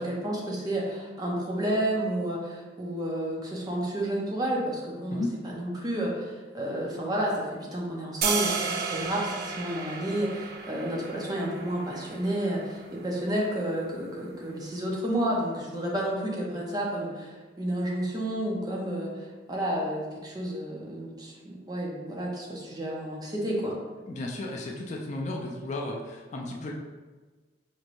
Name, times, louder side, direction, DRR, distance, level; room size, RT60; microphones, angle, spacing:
voice 1, 0.0-23.7, right 1 dB, 20° right, -3 dB, 0.7 m, -31 dB
sound 1, 8.2-14.3, right 5 dB, 55° right, 0.4 m, -34 dB
voice 2, 24.1-26.7, left 2 dB, 40° left, 0 dB, 0.4 m, -34 dB
4.3 x 3.1 x 2.5 m, 1.3 s
head